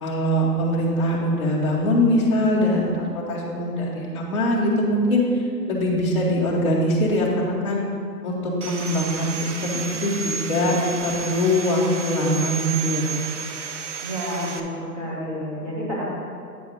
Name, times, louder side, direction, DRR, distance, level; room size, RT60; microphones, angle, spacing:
voice 1, 0.0-5.2 5.7-7.8 8.2-10.8 11.0-13.0, left 1 dB, 20° left, -7 dB, 0.8 m, -22 dB
Sawing, 8.6-14.6, right 5 dB, 50° right, 0.5 m, -32 dB
voice 2, 14.0-16.0, equal, 20° right, -7 dB, 1.7 m, -30 dB
8.5 x 4.7 x 5.4 m, 2.3 s
hypercardioid pair, 170°, 49 cm